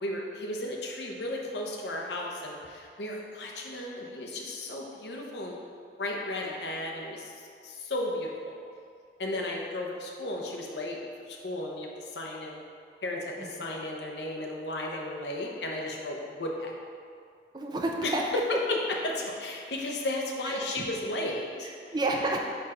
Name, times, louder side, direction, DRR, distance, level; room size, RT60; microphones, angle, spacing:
voice 1, 0.0-5.6 6.0-8.6 9.2-11.0 11.2-12.6 13.0-16.7 18.0-18.8 19.0-21.7, left 1 dB, 80° left, 0 dB, 0.8 m, -34 dB
voice 2, 6.2-6.6 13.4-13.5 17.5-18.2 20.5-20.9 21.6-22.4, right 2 dB, 25° right, 1 dB, 0.4 m, -31 dB
5.1 x 4.6 x 4.2 m, 2.2 s
head